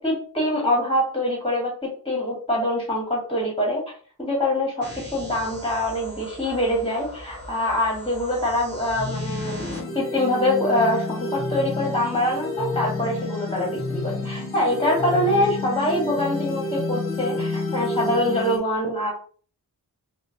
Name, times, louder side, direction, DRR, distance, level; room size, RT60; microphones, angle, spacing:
voice 1, 0.0-3.8 4.2-19.1, left 1 dB, 15° left, -2 dB, 1.5 m, -24 dB
sound 1, 4.8-9.8, equal, 25° right, 1.0 m, -40 dB
sound 2, 9.0-18.6, left 2 dB, 35° left, 1.0 m, -29 dB
4.9 x 2.1 x 2.6 m, 0.44 s
wide cardioid pair, 95°, 37 cm